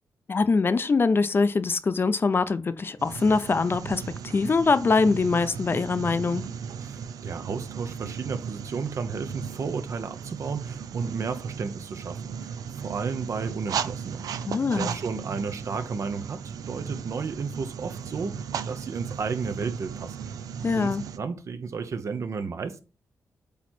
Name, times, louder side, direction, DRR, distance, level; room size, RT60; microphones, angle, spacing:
voice 1, 0.3-6.4 14.4-14.9 20.6-21.0, left 4 dB, 40° left, 0.5 m, -23 dB
sound 1, 3.0-21.2, right 7 dB, 90° right, 0.5 m, -36 dB
voice 2, 6.8-12.5 12.8-14.3 14.8-20.3 20.8-22.8, right 5 dB, 55° right, 0.8 m, -33 dB
8.4 x 3.0 x 4.3 m
cardioid pair, 105°, 6 cm